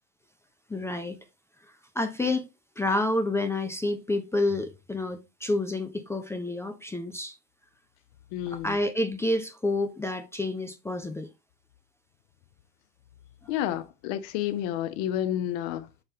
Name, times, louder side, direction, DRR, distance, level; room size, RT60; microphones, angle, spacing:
voice 1, 0.7-1.2 1.9-2.5 2.8-7.4 8.5-11.3 13.4-13.5, left 2 dB, 5° left, 0.4 m, -29 dB
voice 2, 8.3-8.8 13.5-15.9, left 11 dB, 50° left, 1.0 m, -30 dB
5.6 x 5.5 x 3.1 m
hypercardioid pair, 90°, 49 cm